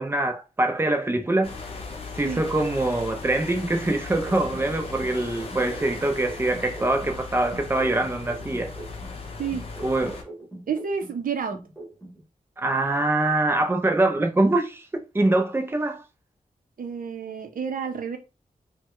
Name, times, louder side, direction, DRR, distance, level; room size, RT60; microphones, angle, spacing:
voice 1, 0.0-1.6 2.2-8.7 9.8-10.2 12.6-16.0, right 2 dB, 15° right, 0.5 m, -24 dB
sound 1, 1.4-10.2, left 4 dB, 40° left, 0.7 m, -37 dB
sound 2, 4.3-7.2 7.5-11.2 11.5-12.2, right 1 dB, 5° left, 0.9 m, -42 dB
voice 2, 10.7-11.6 16.8-18.2, right 6 dB, 70° right, 0.6 m, -30 dB
3.2 x 2.2 x 3.0 m
wide cardioid pair, 160°, 15 cm